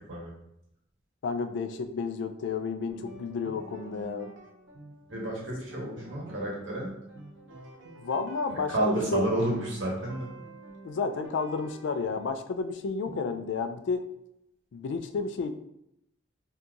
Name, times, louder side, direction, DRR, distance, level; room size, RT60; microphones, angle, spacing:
voice 1, 1.2-4.3 8.0-9.3 10.8-14.0 14.7-15.5, left 4 dB, 70° left, 9 dB, 0.3 m, -31 dB
sound 1, 2.9-12.3, right 1 dB, 70° right, 0.5 m, -47 dB
voice 2, 5.1-6.9 8.5-10.3 13.1-13.2, right 1 dB, 90° right, -4 dB, 1.2 m, -30 dB
2.7 x 2.3 x 3.8 m, 0.79 s
head